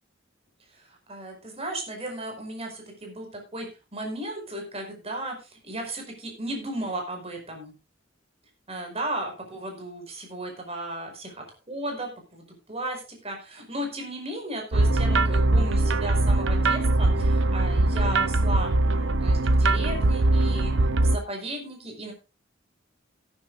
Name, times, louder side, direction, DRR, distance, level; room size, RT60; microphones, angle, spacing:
voice 1, 1.1-3.7 3.9-7.7 8.7-20.7 21.0-22.1, right 1 dB, 35° right, 3 dB, 5.2 m, -35 dB
sound 1, 14.7-21.2, right 2 dB, 80° right, 0.8 m, -21 dB
18.5 x 9.8 x 2.6 m, 0.29 s
head